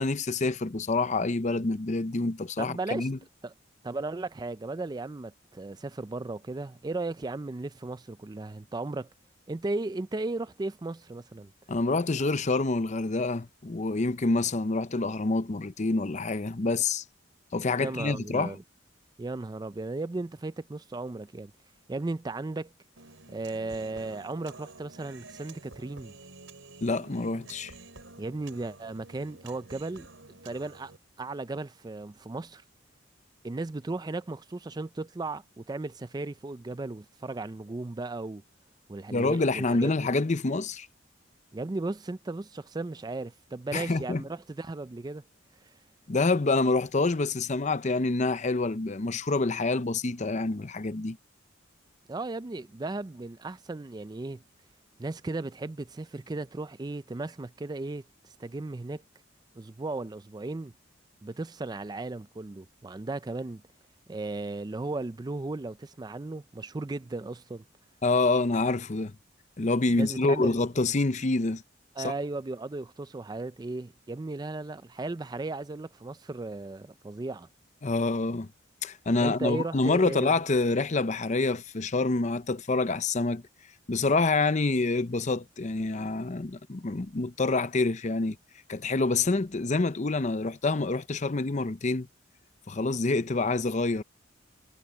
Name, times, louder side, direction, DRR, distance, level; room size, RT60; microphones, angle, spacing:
voice 1, 0.0-3.2 11.7-17.0 17.5-18.5 26.8-27.7 39.1-40.9 43.7-44.2 46.1-51.2 68.0-69.1 69.6-71.6 72.0-72.1 77.8-78.5 78.8-83.4 83.9-88.4 88.7-92.1 92.7-94.0, left 3 dB, 35° left, 0.7 m, -27 dB
voice 2, 2.6-3.1 3.4-3.5 3.8-9.1 9.5-11.5 17.8-18.6 19.2-21.5 21.9-22.7 23.3-26.1 28.2-30.1 30.4-30.9 31.2-32.6 33.4-38.4 38.9-39.9 41.5-45.2 45.6-45.8 52.1-54.4 55.0-59.0 59.6-60.7 61.2-63.6 64.1-67.6 69.9-70.6 72.0-77.5 79.2-80.3, right 2 dB, 20° right, 0.4 m, -36 dB
Human voice, 23.0-31.0, right 3 dB, 80° right, 4.1 m, -50 dB
head